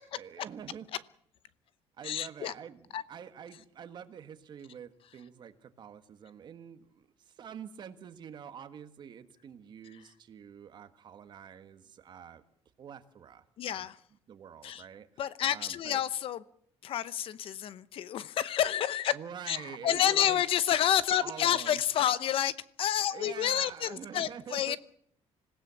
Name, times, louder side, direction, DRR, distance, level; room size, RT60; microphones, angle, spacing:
voice 1, 0.1-0.9 2.0-12.4 12.8-13.9 14.3-15.1 15.5-16.0 19.1-20.4 21.2-21.8 23.1-24.8, right 8 dB, 40° right, 1.6 m, -46 dB
voice 2, 2.0-2.5 2.9-3.0 13.6-13.9 14.6-14.8 15.2-16.4 16.8-19.1 19.5-22.5 22.8-24.8, left 10 dB, 55° left, 0.8 m, -29 dB
26.0 x 16.5 x 7.1 m
cardioid pair, 170°, 11 cm